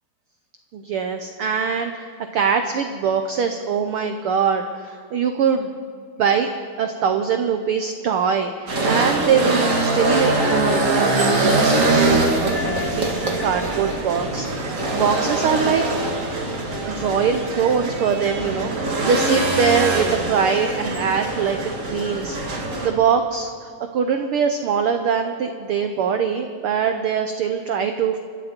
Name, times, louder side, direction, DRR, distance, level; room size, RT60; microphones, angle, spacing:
voice 1, 0.7-2.1 2.3-5.7 6.2-6.5 6.8-13.1 13.4-15.8 16.8-21.6 21.9-22.4 22.8-28.2, right 6 dB, 85° right, 6 dB, 1.2 m, -22 dB
sound 1, 8.7-22.9, right 2 dB, 35° right, 1.5 m, -22 dB
26.0 x 12.5 x 4.4 m, 2.3 s
omnidirectional pair, 3.5 m